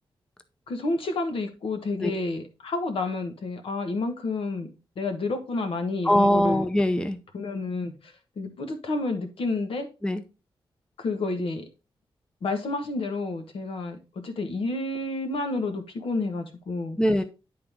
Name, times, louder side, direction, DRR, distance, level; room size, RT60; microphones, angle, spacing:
voice 1, 0.7-4.7 5.0-6.7 7.3-9.9 11.0-11.6 12.4-14.0 14.2-17.0, left 3 dB, 80° left, 1.3 m, -30 dB
voice 2, 6.0-7.2 10.0-10.2 17.0-17.2, left 1 dB, 10° left, 0.6 m, -22 dB
10.5 x 3.9 x 3.6 m
wide cardioid pair, 115°, 9 cm